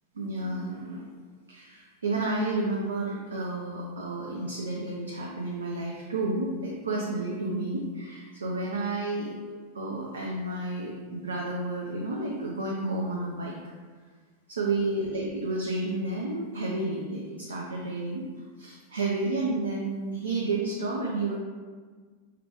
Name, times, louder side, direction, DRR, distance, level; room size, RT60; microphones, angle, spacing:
voice 1, 0.1-1.1 1.5-9.3 9.7-13.5 14.5-18.2 18.6-21.4, right 2 dB, 70° right, -2 dB, 0.4 m, -31 dB
4.8 x 2.2 x 3.0 m, 1.5 s
figure-of-eight pair, 90°, 0 cm